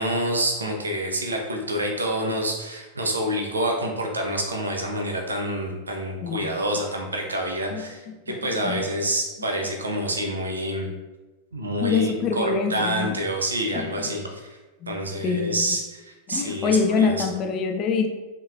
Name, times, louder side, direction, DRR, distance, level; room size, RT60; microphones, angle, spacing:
voice 1, 0.0-10.9 11.5-14.6 14.9-17.3, right 1 dB, 75° right, 2 dB, 0.7 m, -27 dB
voice 2, 8.3-8.8 11.8-13.2 13.7-13.9 14.8-15.7 16.3-18.1, left 5 dB, 35° left, 5 dB, 0.5 m, -25 dB
5.6 x 3.0 x 2.4 m, 1.2 s
figure-of-eight pair, 90°, 0 cm